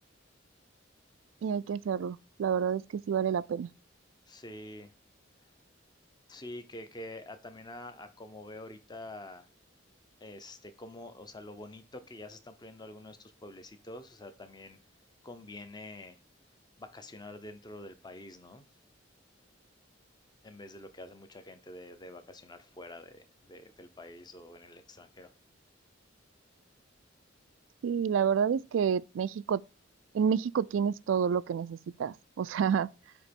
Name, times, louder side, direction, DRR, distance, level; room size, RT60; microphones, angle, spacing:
voice 1, 1.4-3.7 27.8-29.6 30.1-32.9, right 7 dB, 85° right, 0.3 m, -29 dB
voice 2, 4.3-4.9 6.3-9.5 10.2-14.8 15.2-16.2 16.8-18.6 20.4-25.3, left 1 dB, 20° left, 0.7 m, -47 dB
8.2 x 3.0 x 5.2 m
head